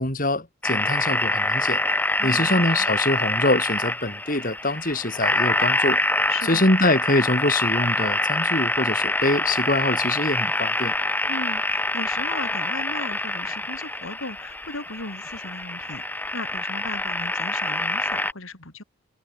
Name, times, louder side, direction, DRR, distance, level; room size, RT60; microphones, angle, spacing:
voice 1, 0.0-1.8 2.2-6.0 6.5-10.9, left 2 dB, 40° left, 4.5 m, -24 dB
sound 1, 0.6-18.3, left 2 dB, 10° left, 3.2 m, -25 dB
voice 2, 2.2-2.9 6.3-6.7 11.3-18.8, left 2 dB, 70° left, 3.5 m, -36 dB
head